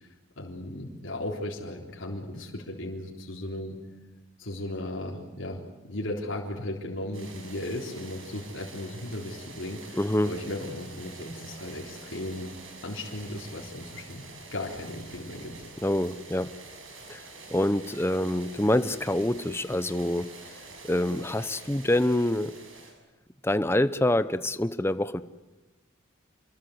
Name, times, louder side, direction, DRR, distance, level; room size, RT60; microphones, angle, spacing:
voice 1, 0.4-3.8 4.4-12.5 12.8-14.2 14.5-15.5, left 1 dB, 75° left, -2 dB, 3.8 m, -36 dB
sound 1, 7.1-22.9, right 3 dB, 75° right, 7.3 m, -47 dB
voice 2, 9.9-10.3 15.8-16.5 17.1-17.2 17.5-20.3 20.8-22.5 23.4-25.2, left 1 dB, 10° left, 13 dB, 0.8 m, -26 dB
28.0 x 22.0 x 7.9 m, 1.1 s
head